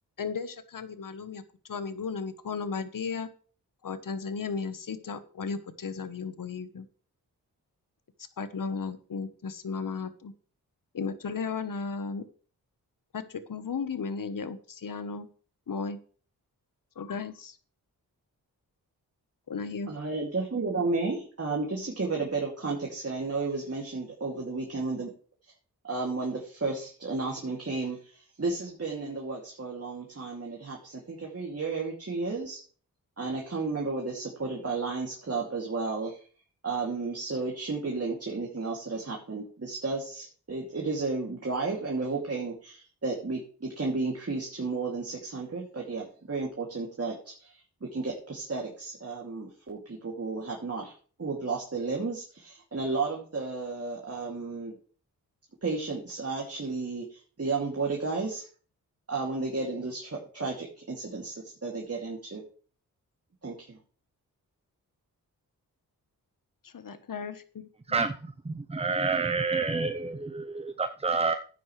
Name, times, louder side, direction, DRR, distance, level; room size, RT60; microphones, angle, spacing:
voice 1, 0.2-3.3 3.8-6.9 8.4-10.3 10.9-12.3 13.1-15.3 15.7-16.0 16.9-17.6 19.5-19.9 66.6-68.0, left 5 dB, 55° left, 12 dB, 1.3 m, -35 dB
voice 2, 19.9-25.1 25.8-32.6 33.2-36.2 36.6-50.9 51.2-54.7 55.6-58.4 59.1-62.4 63.4-63.8, right 3 dB, 40° right, -1 dB, 2.7 m, -33 dB
voice 3, 67.9-71.4, right 4 dB, 15° right, 9 dB, 0.8 m, -29 dB
13.0 x 9.3 x 3.3 m, 0.42 s
supercardioid pair, 45°, 39 cm